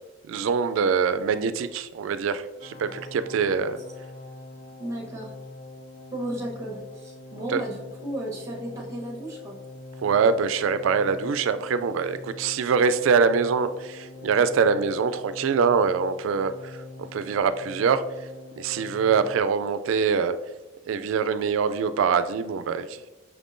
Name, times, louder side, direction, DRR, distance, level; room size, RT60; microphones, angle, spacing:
voice 1, 0.3-3.8 7.5-7.6 10.0-18.0 18.6-20.4 20.9-23.0, right 5 dB, 80° right, 13 dB, 0.3 m, -24 dB
sound 1, 2.6-19.4, left 3 dB, 45° left, 0.4 m, -43 dB
voice 2, 4.8-5.3 6.1-9.6, right 1 dB, 15° right, -2 dB, 1.0 m, -34 dB
5.9 x 3.6 x 2.5 m, 1.1 s
head